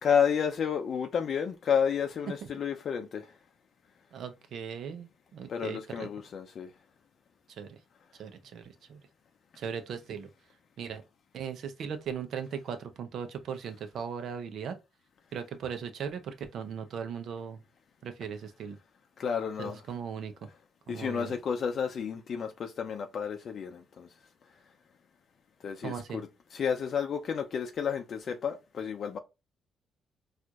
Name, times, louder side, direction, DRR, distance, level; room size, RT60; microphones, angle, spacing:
voice 1, 0.0-3.3 5.5-6.7 19.2-19.8 20.9-24.1 25.6-29.2, left 7 dB, 60° left, 0.5 m, -31 dB
voice 2, 4.1-6.1 7.5-7.8 8.2-9.0 9.6-10.3 10.8-11.0 11.3-14.8 15.3-17.6 18.0-18.8 19.6-20.3 20.9-21.4 25.8-26.3, right 7 dB, 70° right, 0.7 m, -38 dB
4.3 x 2.5 x 2.4 m
cardioid pair, 90°, 0 cm